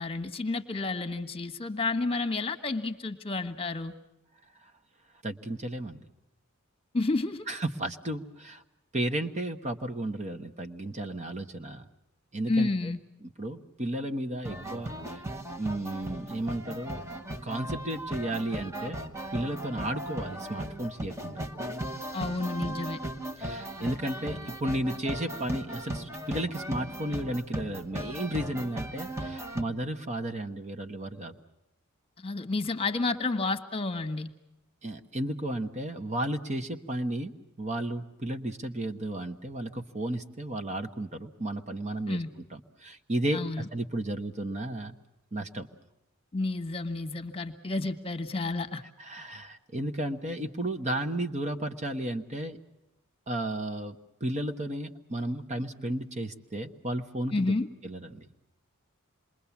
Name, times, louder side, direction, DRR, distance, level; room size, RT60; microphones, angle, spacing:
voice 1, 0.0-3.9 6.9-7.5 12.5-13.0 22.1-23.0 32.2-34.3 42.1-42.3 43.3-43.7 46.3-48.8 57.3-57.7, left 3 dB, 25° left, 7 dB, 1.5 m, -30 dB
voice 2, 5.2-6.0 7.5-8.6 8.9-11.8 12.3-12.7 13.4-15.2 15.6-17.0 17.4-19.0 19.3-21.4 23.4-31.3 34.8-37.3 37.6-42.2 42.5-45.0 45.3-45.7 49.0-52.6 53.3-57.5 57.8-58.4, right 1 dB, 30° right, 6 dB, 1.2 m, -33 dB
sound 1, 14.4-29.6, right 1 dB, 15° right, 1.3 m, -37 dB
27.5 x 22.0 x 7.1 m, 0.90 s
head